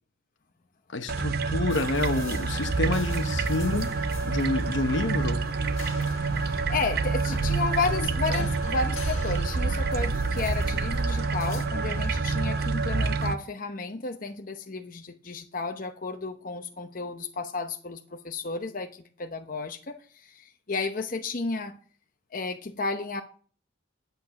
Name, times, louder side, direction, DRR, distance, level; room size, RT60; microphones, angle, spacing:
voice 1, 0.9-3.9 4.2-5.4 8.3-8.5, left 2 dB, 65° left, 1.0 m, -28 dB
sound 1, 1.1-13.3, right 4 dB, 50° right, 0.6 m, -27 dB
sound 2, 1.7-11.7, left 5 dB, 90° left, 1.7 m, -46 dB
voice 2, 6.4-21.8 22.3-23.2, left 3 dB, 40° left, 0.8 m, -32 dB
10.5 x 8.2 x 5.8 m
head